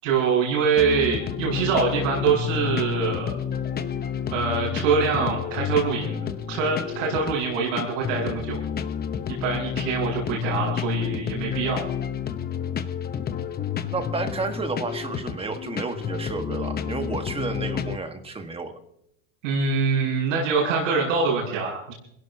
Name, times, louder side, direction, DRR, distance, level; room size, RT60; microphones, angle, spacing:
voice 1, 0.0-3.4 4.3-6.1 6.5-8.6 9.3-11.8 19.4-21.9, right 5 dB, 90° right, -8 dB, 6.9 m, -24 dB
sound 1, 0.8-18.0, left 8 dB, 25° left, 0.9 m, -30 dB
voice 2, 13.9-18.8, right 3 dB, 15° right, 6 dB, 1.5 m, -31 dB
26.0 x 17.0 x 2.8 m, 0.77 s
supercardioid pair, 125°, 38 cm